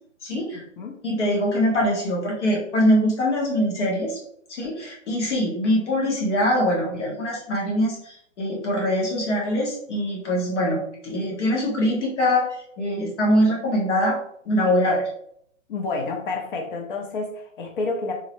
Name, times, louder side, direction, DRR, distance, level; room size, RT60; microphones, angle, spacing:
voice 1, 0.2-0.6 1.0-4.2 4.5-12.4 12.8-14.2 14.5-15.0, equal, 60° left, -2 dB, 1.2 m, -23 dB
voice 2, 15.7-18.1, left 3 dB, 40° left, 2 dB, 0.6 m, -29 dB
3.7 x 2.0 x 3.0 m, 0.67 s
hypercardioid pair, 150°, 39 cm